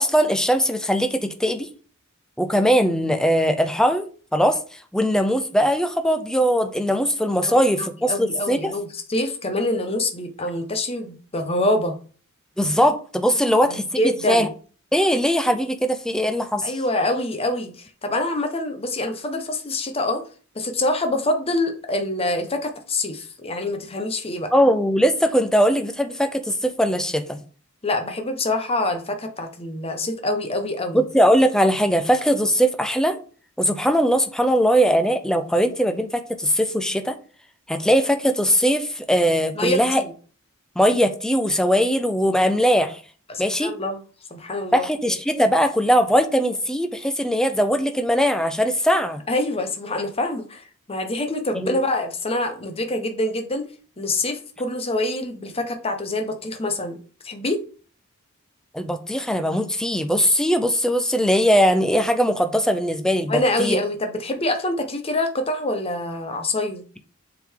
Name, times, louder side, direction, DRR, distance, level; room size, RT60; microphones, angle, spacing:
voice 1, 0.0-1.7 2.4-8.7 12.6-13.9 14.3-14.5 14.9-16.7 24.5-27.4 30.9-33.2 33.6-37.2 37.7-40.0 40.8-43.0 43.4-43.7 44.7-49.2 51.5-51.8 58.7-63.8, equal, 5° left, 0.5 m, -20 dB
voice 2, 7.4-11.9 13.5-14.5 16.6-20.2 20.5-24.5 27.8-31.0 39.5-40.1 43.3-44.0 44.3-44.8 49.3-53.7 54.0-57.6 63.3-66.8, left 1 dB, 25° left, 1.0 m, -25 dB
7.4 x 3.8 x 3.7 m
head